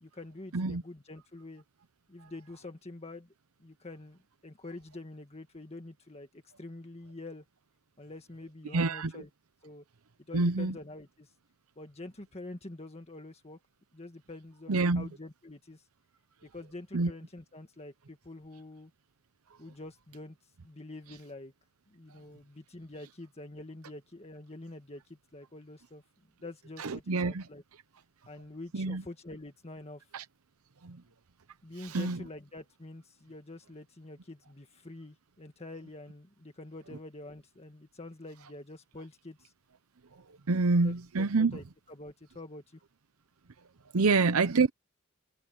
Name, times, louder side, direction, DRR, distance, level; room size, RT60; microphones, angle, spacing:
voice 1, 0.0-1.6 2.1-3.3 3.6-7.4 8.0-9.3 9.6-9.8 10.3-11.3 11.8-13.6 13.9-15.8 16.4-18.9 19.6-20.4 20.6-21.5 21.9-26.0 26.4-27.6 28.3-30.1 31.6-39.5 40.8-41.3 41.5-42.8, left 2 dB, 30° left, 1.7 m, -46 dB
voice 2, 8.7-9.1 10.3-10.7 14.7-15.1 16.9-17.1 26.8-27.4 28.7-29.0 30.1-30.2 30.8-31.0 31.8-32.2 40.5-41.5 43.9-44.7, right 3 dB, 85° right, 0.8 m, -27 dB
head